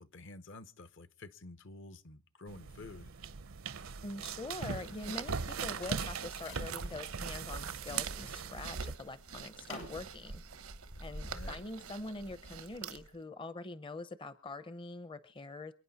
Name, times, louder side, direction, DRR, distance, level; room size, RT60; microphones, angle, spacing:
voice 1, 0.0-3.1 11.3-11.6, left 2 dB, 60° left, 0.9 m, -50 dB
sound 1, 2.5-9.0, right 5 dB, 70° right, 0.7 m, -40 dB
voice 2, 4.0-10.4 11.0-15.7, left 2 dB, 25° left, 0.6 m, -44 dB
sound 2, 4.2-13.2, right 6 dB, 85° right, 1.0 m, -47 dB
sound 3, 4.9-7.3 7.9-8.4 8.8-11.5, left 1 dB, 75° left, 6.4 m, -49 dB
28.0 x 9.6 x 4.1 m
head